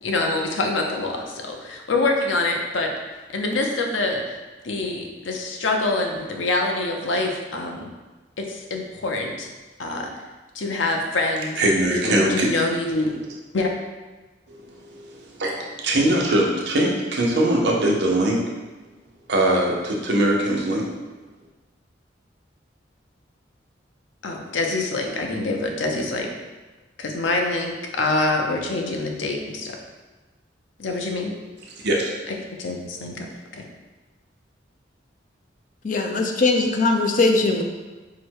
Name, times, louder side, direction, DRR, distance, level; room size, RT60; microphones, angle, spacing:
voice 1, 0.0-2.9 3.3-4.4 4.6-7.9 8.4-9.5 9.8-10.1 10.5-11.6 11.9-13.1 13.5-13.7 24.2-26.3 27.0-29.8 30.8-31.4 32.3-33.3 33.5-33.6, left 2 dB, 90° left, 2 dB, 0.6 m, -25 dB
voice 2, 11.6-12.5 14.5-14.6 14.9-18.4 19.3-20.9 31.8-32.1, right 1 dB, 65° right, -1 dB, 0.8 m, -21 dB
voice 3, 35.8-37.6, left 3 dB, 45° left, 3 dB, 0.4 m, -20 dB
4.7 x 2.2 x 4.5 m, 1.2 s
head